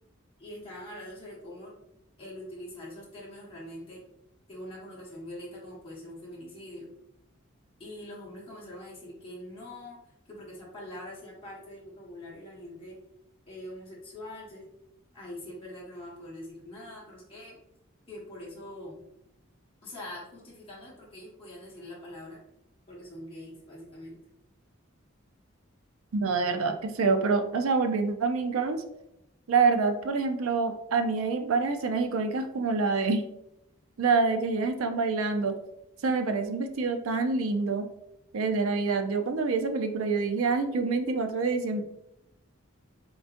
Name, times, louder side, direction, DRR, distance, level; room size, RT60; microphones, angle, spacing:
voice 1, 0.4-1.7 2.2-4.0 4.5-6.9 7.8-10.0 10.3-13.0 13.5-14.7 15.1-17.6 18.1-19.0 19.8-22.4 22.9-24.2, left 1 dB, 25° left, -6 dB, 1.2 m, -43 dB
voice 2, 26.1-28.8 29.5-33.2 34.0-35.6 36.0-37.9 38.3-41.8, right 4 dB, 80° right, 6 dB, 0.5 m, -26 dB
3.8 x 3.6 x 2.5 m, 0.81 s
head